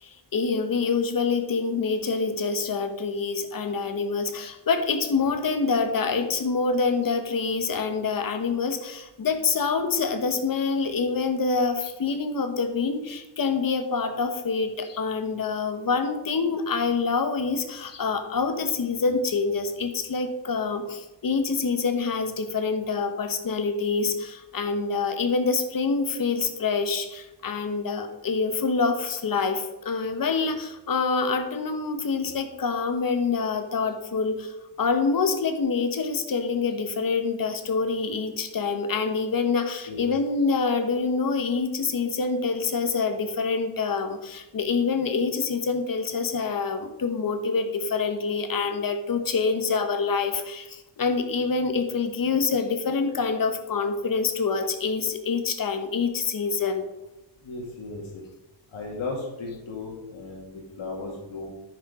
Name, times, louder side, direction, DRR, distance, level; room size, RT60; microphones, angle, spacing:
voice 1, 0.0-56.8, left 4 dB, 45° left, 7 dB, 1.2 m, -26 dB
voice 2, 57.4-58.2 58.7-61.5, left 3 dB, 75° left, -1 dB, 2.1 m, -36 dB
10.0 x 6.3 x 4.9 m, 0.98 s
wide cardioid pair, 145°, 48 cm